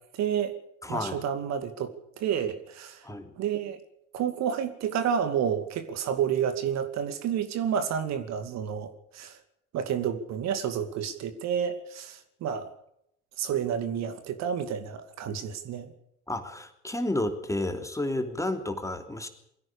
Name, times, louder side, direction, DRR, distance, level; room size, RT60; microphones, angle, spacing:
voice 1, 0.1-0.5 0.9-3.1 3.4-3.8 4.1-9.4 9.7-12.7 13.4-15.9, right 8 dB, 50° right, 9 dB, 2.4 m, -30 dB
voice 2, 0.8-1.2 3.0-3.3 15.3-15.4 16.3-19.3, left 1 dB, 10° left, 6 dB, 3.2 m, -31 dB
24.0 x 16.5 x 6.9 m, 0.75 s
figure-of-eight pair, 60°, 36 cm